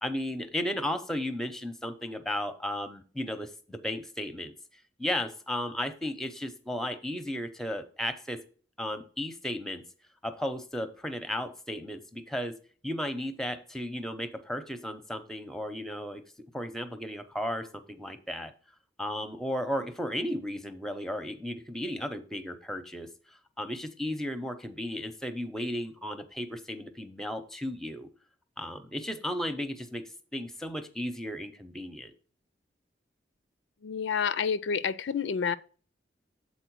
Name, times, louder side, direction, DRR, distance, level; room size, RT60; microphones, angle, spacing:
voice 1, 0.0-4.5 5.0-8.4 8.8-9.8 10.2-12.5 12.8-16.2 16.5-18.5 19.0-28.1 28.6-30.0 30.3-32.1, left 1 dB, 5° left, 0.6 m, -34 dB
voice 2, 33.8-35.6, left 6 dB, 85° left, 0.4 m, -29 dB
7.8 x 4.2 x 4.6 m
head